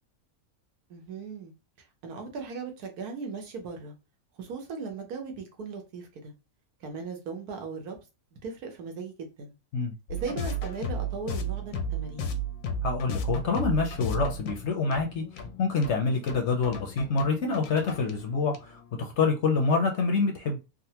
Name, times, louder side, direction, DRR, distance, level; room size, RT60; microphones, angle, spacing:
voice 1, 0.9-1.5 2.0-3.9 4.4-6.3 6.8-8.0 8.4-9.5 10.1-12.4, right 4 dB, 80° right, 1.3 m, -38 dB
sound 1, 10.1-18.8, right 1 dB, 80° left, 1.1 m, -34 dB
voice 2, 12.8-15.2 15.6-20.6, left 4 dB, 60° left, 0.8 m, -26 dB
3.7 x 2.1 x 2.8 m
omnidirectional pair, 1.6 m